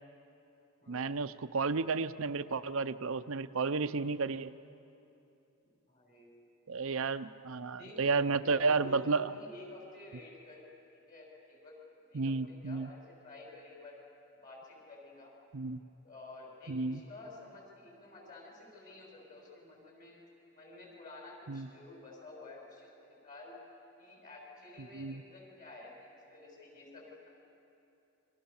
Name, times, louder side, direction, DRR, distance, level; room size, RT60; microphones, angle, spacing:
voice 1, 0.9-4.5 6.7-9.3 12.1-12.9 15.5-15.8 16.7-17.0 21.5-21.7 24.8-25.2, right 4 dB, 70° right, 10 dB, 0.6 m, -32 dB
voice 2, 5.9-6.4 7.6-8.0 8.3-10.6 10.9-11.8 12.0-14.0 14.4-15.3 16.0-20.2 20.5-23.5 24.0-27.3, left 2 dB, 40° left, -2 dB, 7.3 m, -51 dB
30.0 x 25.0 x 7.2 m, 2.8 s
head